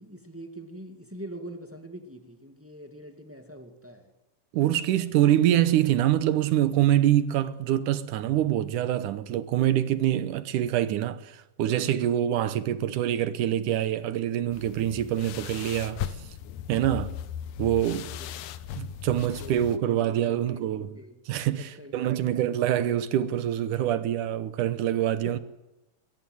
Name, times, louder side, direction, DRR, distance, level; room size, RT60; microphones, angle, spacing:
voice 1, 0.0-4.1 18.2-18.3 19.0-21.2 21.6-22.5 25.2-25.4, right 1 dB, 5° right, 1.2 m, -44 dB
voice 2, 4.5-16.0 16.7-17.1 17.6-18.1 18.8-21.0 21.3-25.4, right 12 dB, 70° right, 2.1 m, -25 dB
sound 1, 14.5-19.8, left 10 dB, 70° left, 2.1 m, -37 dB
22.0 x 20.5 x 7.9 m
omnidirectional pair, 4.5 m